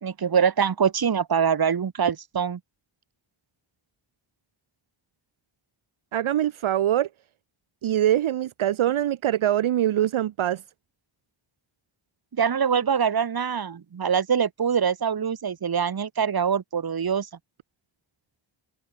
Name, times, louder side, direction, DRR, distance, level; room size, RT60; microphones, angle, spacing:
voice 1, 0.0-2.6 12.3-17.3, right 7 dB, 45° right, 1.1 m, -24 dB
voice 2, 6.1-7.1 7.8-10.6, right 12 dB, 70° right, 0.7 m, -23 dB
open air
cardioid pair, 60°, 49 cm